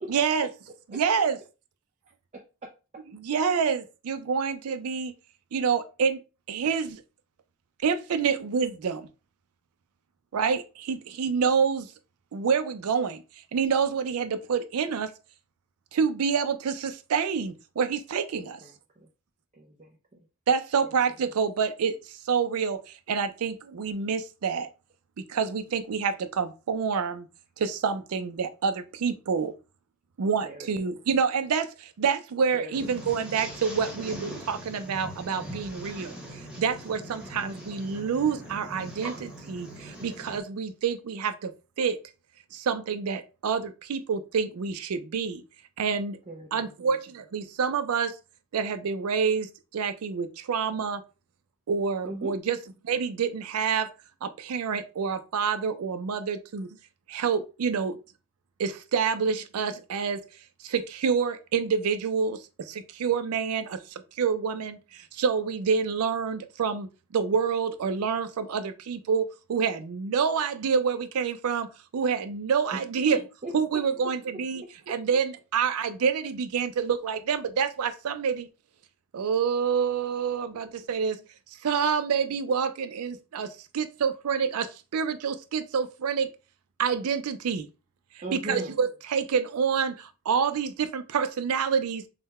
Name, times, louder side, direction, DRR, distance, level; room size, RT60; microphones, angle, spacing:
voice 1, 0.1-0.5 0.9-1.4 3.1-5.1 5.5-6.2 6.5-7.0 7.8-9.1 10.3-11.9 12.3-13.2 13.5-15.1 15.9-18.6 20.5-24.7 25.2-27.3 27.6-29.5 30.2-36.1 36.6-39.1 39.5-39.7 40.0-41.5 41.8-42.0 42.5-45.4 45.8-46.2 46.5-48.2 48.5-51.0 51.7-52.6 52.8-53.9 54.2-56.7 57.1-58.0 58.6-60.2 60.6-71.7 71.9-73.2 73.5-78.5 79.1-81.2 81.6-86.3 86.8-87.7 88.3-92.1, right 6 dB, 85° right, 0.4 m, -27 dB
voice 2, 2.3-2.7 18.3-19.1 19.5-20.0 20.8-20.9 30.4-31.0 32.5-32.9 46.3-46.7 52.0-52.3 72.7-72.8 73.1-73.8 88.2-88.7, right 1 dB, 30° right, 0.5 m, -39 dB
voice 3, 32.7-40.4, right 1 dB, 5° right, 1.1 m, -41 dB
3.8 x 2.1 x 4.1 m
head